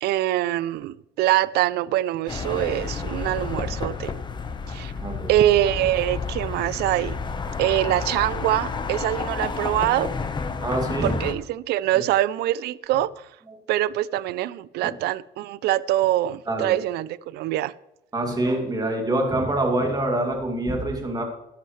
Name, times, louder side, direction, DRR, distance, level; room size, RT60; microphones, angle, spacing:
voice 1, 0.0-4.1 4.7-4.9 5.3-7.2 7.6-10.1 11.0-13.3 13.7-17.7, right 14 dB, 75° right, 0.4 m, -24 dB
sound 1, 2.3-11.3, left 5 dB, 25° left, 1.0 m, -30 dB
voice 2, 5.0-5.3 10.6-11.2 14.8-14.9 16.5-16.8 18.1-21.2, right 1 dB, 25° right, 2.6 m, -25 dB
13.5 x 11.0 x 3.2 m
cardioid pair, 110°, 17 cm